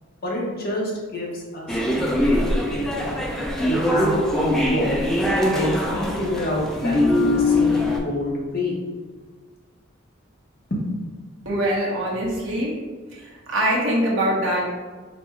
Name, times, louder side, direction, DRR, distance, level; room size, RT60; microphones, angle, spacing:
voice 1, 0.2-1.8 2.1-3.2 3.7-5.0 5.5-8.7 10.7-11.0, equal, 45° left, -4 dB, 1.0 m, -28 dB
sound 1, 1.7-8.0, left 1 dB, ahead, 0.3 m, -22 dB
voice 2, 11.4-12.7 13.1-14.7, right 1 dB, 70° right, -4 dB, 1.0 m, -23 dB
4.2 x 2.3 x 4.3 m, 1.4 s
head